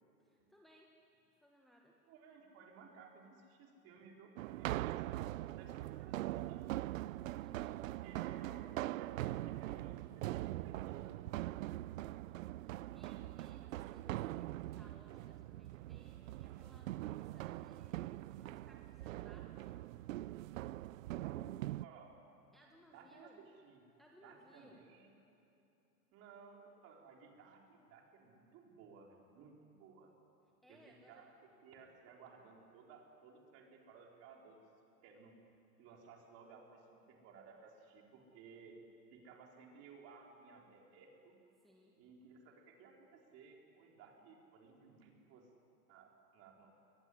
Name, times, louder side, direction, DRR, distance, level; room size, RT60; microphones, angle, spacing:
voice 1, 0.2-0.9 1.3-2.0 7.4-7.8 12.0-19.8 22.5-23.4 24.0-24.8 30.6-31.2 41.6-42.0, equal, ahead, -1 dB, 1.2 m, -65 dB
voice 2, 2.1-6.7 7.7-11.2 21.0-22.2 22.9-23.3 23.6-23.9 24.2-25.3 26.1-30.1 30.7-30.8 31.1-34.8 35.0-35.3 35.8-38.8 39.1-41.4 42.0-45.5 45.9-46.7, right 5 dB, 30° right, 0 dB, 4.2 m, -59 dB
sound 1, 4.4-21.9, right 15 dB, 60° right, 0.5 m, -42 dB
22.0 x 19.5 x 10.0 m, 2.8 s
hypercardioid pair, 145°, 46 cm